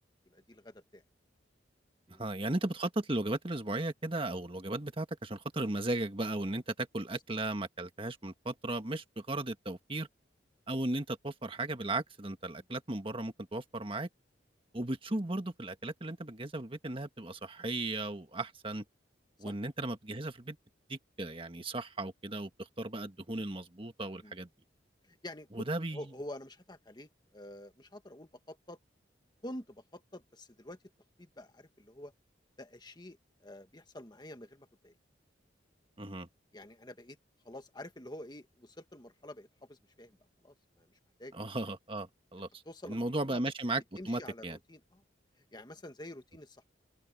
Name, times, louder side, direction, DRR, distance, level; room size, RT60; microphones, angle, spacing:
voice 1, 0.2-1.0 2.1-2.3 12.6-12.7 19.4-19.5 24.2-24.3 25.0-25.6 25.9-28.8 29.4-30.8 31.2-32.1 32.6-34.9 36.5-37.2 37.4-40.2 40.4-40.9 41.2-41.3 42.6-43.4 44.0-45.0 45.4-46.6, left 1 dB, 25° left, 1.6 m, -48 dB
voice 2, 2.1-10.1 10.7-14.1 14.7-18.8 19.4-20.6 20.9-24.5 25.5-26.0 36.0-36.3 41.3-44.6, right 2 dB, 30° right, 1.6 m, -36 dB
open air
head